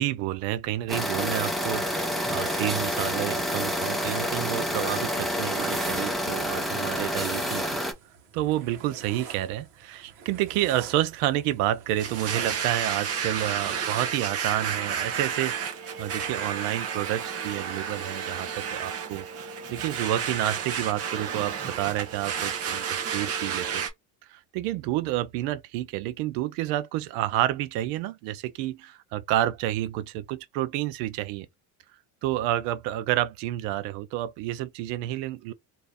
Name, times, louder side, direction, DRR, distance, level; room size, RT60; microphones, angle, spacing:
voice 1, 0.0-7.6 8.3-23.9 24.3-31.5 32.2-35.5, right 14 dB, 90° right, 0.6 m, -29 dB
sound 1, 0.9-7.9, equal, ahead, 0.5 m, -28 dB
sound 2, 1.6-14.8, right 6 dB, 65° right, 1.2 m, -45 dB
Domestic sounds home sounds, 12.0-23.9, right 7 dB, 40° right, 0.8 m, -31 dB
2.7 x 2.5 x 3.4 m
cardioid pair, 165°, 39 cm